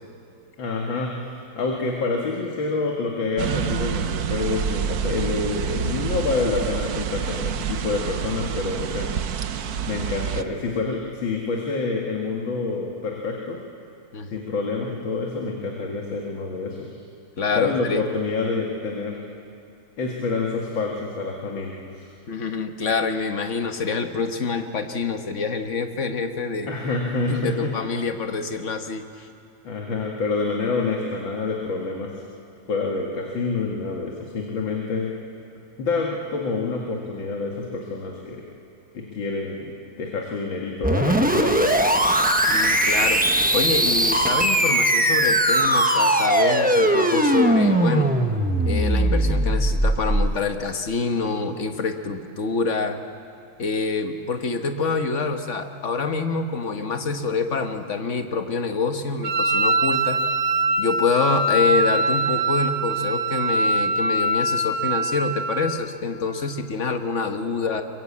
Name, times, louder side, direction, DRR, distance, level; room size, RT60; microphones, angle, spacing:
voice 1, 0.6-9.1 9.9-13.6 14.3-16.9 17.5-19.2 20.0-22.1 26.7-27.7 29.6-32.1 32.7-35.1 35.8-38.4 38.9-39.7 40.0-41.7, left 3 dB, 70° left, 0 dB, 2.6 m, -27 dB
sound 1, 3.4-10.4, right 8 dB, 60° right, 1.1 m, -27 dB
voice 2, 17.4-18.0 22.3-26.7 27.3-29.3 42.5-43.2 43.5-48.1 48.6-53.0 53.6-60.2 60.8-67.8, left 4 dB, 40° left, 6 dB, 1.5 m, -26 dB
sound 2, 40.8-50.5, right 1 dB, 10° right, 0.5 m, -20 dB
Wind instrument woodwind instrument, 59.2-65.8, right 2 dB, 90° right, 2.0 m, -23 dB
23.0 x 22.5 x 8.6 m, 2.4 s
omnidirectional pair, 2.2 m